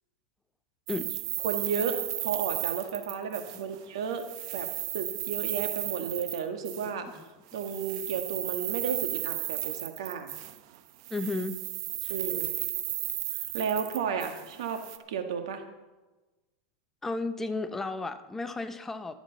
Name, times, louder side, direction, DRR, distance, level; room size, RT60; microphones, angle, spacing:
voice 1, 0.9-1.2 7.0-7.3 11.1-11.6 17.0-19.1, left 3 dB, 10° left, 9 dB, 0.7 m, -33 dB
sound 1, 0.9-3.8 4.1-6.9 7.5-10.8 11.0-15.0, right 15 dB, 60° right, 0.9 m, -34 dB
voice 2, 1.4-4.3 4.5-4.7 4.9-7.1 7.5-10.3 12.1-12.6 13.5-15.6, right 6 dB, 85° right, 6 dB, 1.7 m, -33 dB
24.5 x 8.3 x 4.1 m, 1.2 s
supercardioid pair, 135°, 3 cm